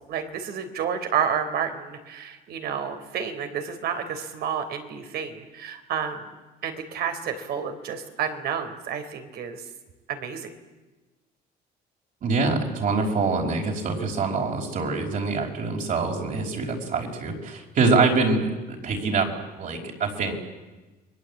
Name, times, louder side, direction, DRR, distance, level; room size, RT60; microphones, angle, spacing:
voice 1, 0.1-6.3 6.6-9.6 10.1-10.5, right 7 dB, 70° right, 7 dB, 4.0 m, -30 dB
voice 2, 12.2-19.3 19.6-20.3, right 4 dB, 55° right, 1 dB, 5.3 m, -25 dB
29.5 x 22.0 x 8.7 m, 1.2 s
cardioid pair, 110°, 17 cm